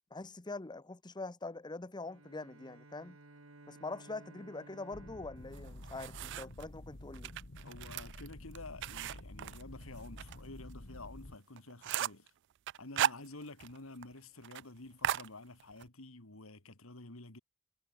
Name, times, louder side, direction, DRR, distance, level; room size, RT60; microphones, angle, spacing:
voice 1, 0.1-3.2 3.7-7.3, left 3 dB, 20° left, 0.8 m, -44 dB
Bowed string instrument, 2.0-6.8, right 2 dB, 90° right, 2.6 m, -58 dB
sound 1, 4.9-11.4, left 1 dB, 60° left, 1.9 m, -50 dB
sound 2, 5.5-6.7 7.1-10.4 10.7-10.8 11.2-11.3 11.6-12.3 12.7-13.8 14.0-14.1 14.4-14.6 15.0-15.9, right 11 dB, 60° right, 0.3 m, -37 dB
voice 2, 7.6-12.3 12.8-17.4, left 2 dB, 85° left, 2.6 m, -50 dB
head